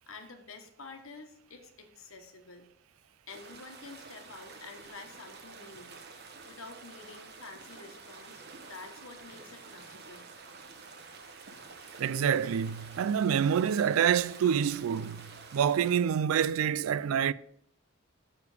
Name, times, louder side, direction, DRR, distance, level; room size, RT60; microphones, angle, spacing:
voice 1, 0.1-2.7 3.3-5.9 6.2-10.3, left 4 dB, 85° left, 1.3 m, -49 dB
sound 1, 3.3-16.0, right 4 dB, 50° right, 1.0 m, -49 dB
voice 2, 12.0-17.3, right 8 dB, 85° right, 0.3 m, -27 dB
6.8 x 6.8 x 4.9 m
head